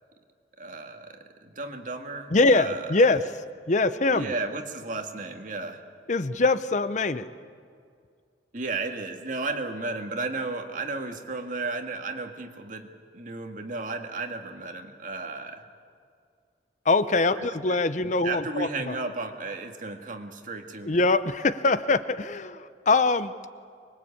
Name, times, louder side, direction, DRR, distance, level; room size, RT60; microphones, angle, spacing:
voice 1, 0.6-3.1 4.1-5.8 8.5-12.9 13.1-15.6 17.4-17.8 18.0-21.0, right 3 dB, 50° right, 4 dB, 1.9 m, -34 dB
voice 2, 2.3-3.2 3.7-4.3 6.1-7.3 16.9-18.9 20.8-23.4, left 3 dB, 45° left, 13 dB, 0.7 m, -23 dB
24.5 x 21.5 x 8.6 m, 2.2 s
head